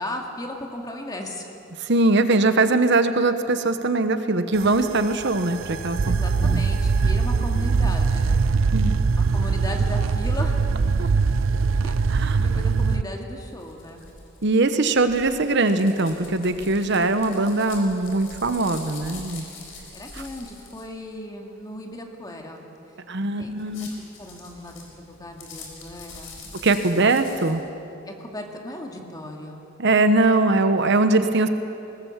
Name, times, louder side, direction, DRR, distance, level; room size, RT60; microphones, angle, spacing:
voice 1, 0.0-1.5 6.1-8.4 9.3-10.6 11.8-11.9 12.4-14.0 19.9-22.7 23.4-23.5 23.8-26.5 28.1-29.6, left 1 dB, 20° left, 1 dB, 2.2 m, -36 dB
voice 2, 1.8-6.1 6.4-6.6 8.7-9.0 11.0-11.1 12.1-12.4 14.4-19.4 23.1-24.0 26.6-27.6 29.8-31.5, right 2 dB, 60° right, 9 dB, 1.0 m, -21 dB
sound 1, 4.6-13.0, right 4 dB, 80° right, 0.5 m, -22 dB
sound 2, 13.4-20.9 23.5-27.5, left 4 dB, 90° left, 4.3 m, -44 dB
21.0 x 19.0 x 7.3 m, 2.9 s
head